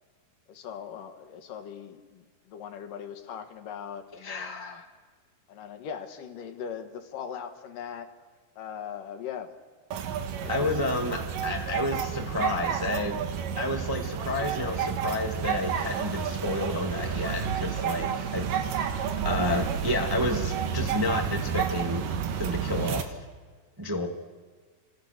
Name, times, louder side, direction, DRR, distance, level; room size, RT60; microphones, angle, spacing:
voice 1, 0.5-4.8 5.5-8.1 8.6-9.5 10.4-10.7, left 8 dB, 65° left, 7 dB, 3.0 m, -40 dB
voice 2, 4.2-4.8 10.5-13.2 13.6-22.0 22.4-23.2 23.8-24.1, left 1 dB, 35° right, 2 dB, 0.3 m, -30 dB
sound 1, 9.9-23.0, right 7 dB, 70° right, 2.9 m, -30 dB
29.5 x 26.5 x 6.6 m, 1.5 s
omnidirectional pair, 4.3 m